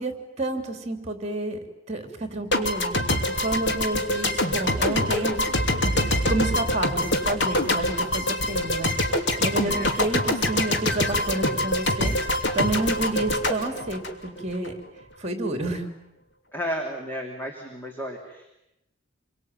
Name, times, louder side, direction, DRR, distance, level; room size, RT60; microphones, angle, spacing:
voice 1, 0.0-1.6 1.9-3.0 3.4-5.5 5.8-6.0 6.3-8.9 9.4-12.2 12.5-14.7 15.2-15.9, right 2 dB, 35° right, 6 dB, 3.2 m, -29 dB
sound 1, 2.5-14.7, left 1 dB, 65° left, 2.9 m, -25 dB
voice 2, 9.6-10.0 16.5-18.5, equal, 10° left, 0 dB, 3.2 m, -33 dB
28.0 x 23.0 x 9.2 m, 0.89 s
head